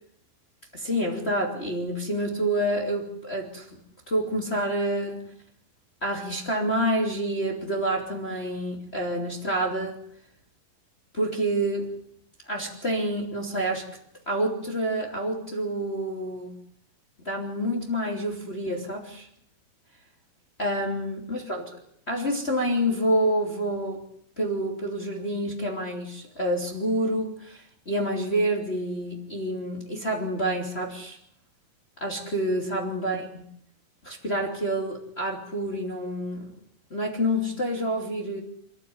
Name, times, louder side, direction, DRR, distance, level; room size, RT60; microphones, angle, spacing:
voice 1, 0.7-3.8 4.1-5.2 6.0-10.0 11.1-11.9 12.5-13.9 14.3-16.6 17.2-19.3 20.6-21.7 22.1-24.0 24.4-31.2 32.0-33.4 34.0-36.5 36.9-38.4, right 1 dB, 20° left, 0 dB, 3.0 m, -28 dB
27.0 x 14.5 x 9.6 m, 0.70 s
omnidirectional pair, 4.1 m